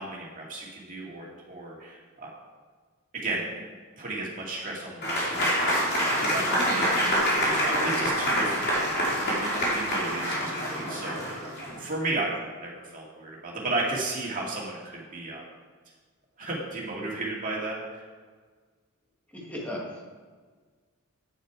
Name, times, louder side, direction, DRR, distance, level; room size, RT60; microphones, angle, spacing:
voice 1, 0.0-2.3 3.1-3.7 4.0-11.4 11.8-15.4 16.4-18.0, right 2 dB, 40° right, -3 dB, 2.2 m, -34 dB
Applause / Crowd, 5.0-11.8, equal, 50° left, 2.5 m, -26 dB
voice 2, 19.3-20.0, left 1 dB, 5° left, -4 dB, 2.1 m, -36 dB
8.9 x 6.7 x 4.8 m, 1.5 s
head